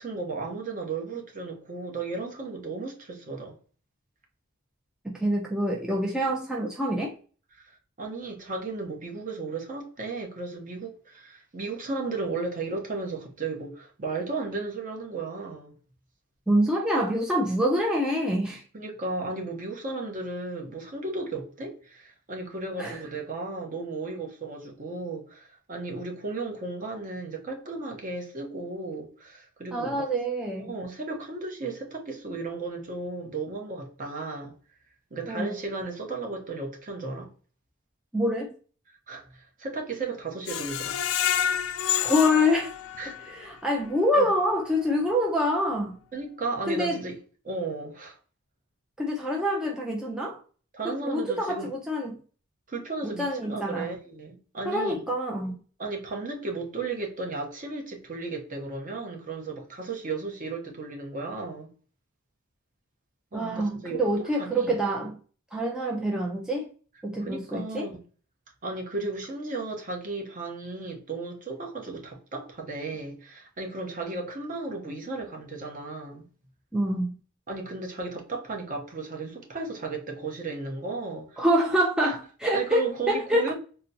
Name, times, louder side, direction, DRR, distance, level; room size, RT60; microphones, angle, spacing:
voice 1, 0.0-3.6 7.5-15.7 18.7-30.1 30.6-34.5 35.1-37.3 39.1-41.2 43.0-43.2 44.1-44.3 46.1-47.2 47.4-48.2 50.7-51.7 52.7-55.1 55.8-61.7 63.3-64.8 67.2-68.0 68.6-76.2 77.5-81.4 82.0-82.2 82.5-83.5, right 3 dB, 40° right, 0.8 m, -35 dB
voice 2, 5.0-7.1 16.5-18.6 22.8-23.0 29.7-30.8 35.2-35.5 38.1-38.5 42.0-42.7 43.1-46.0 46.7-47.0 49.0-50.4 50.8-52.2 53.0-53.9 54.7-55.6 63.3-65.1 65.5-66.7 67.0-67.9 76.7-77.2 81.4-83.5, equal, 5° right, 0.4 m, -26 dB
Screech, 40.5-43.4 43.9-44.0 44.4-44.5, left 10 dB, 70° left, 0.3 m, -28 dB
4.0 x 2.1 x 2.6 m
head